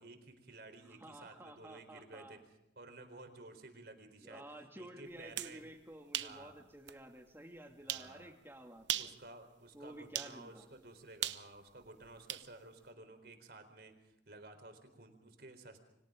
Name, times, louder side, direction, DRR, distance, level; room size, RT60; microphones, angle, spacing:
voice 1, 0.0-2.4 2.8-4.4 4.8-5.6 6.2-6.5 7.8-8.3 9.0-15.8, right 2 dB, 60° right, 7 dB, 4.2 m, -54 dB
voice 2, 0.8-2.4 4.2-9.1 9.7-10.7, right 1 dB, 15° right, 3 dB, 2.5 m, -52 dB
sound 1, 5.1-5.6 6.1-6.4 6.9-7.0 7.9-8.1 8.8-9.2 10.1-10.4 11.2-12.5, right 12 dB, 80° right, 0.9 m, -38 dB
29.5 x 26.0 x 3.8 m, 0.90 s
head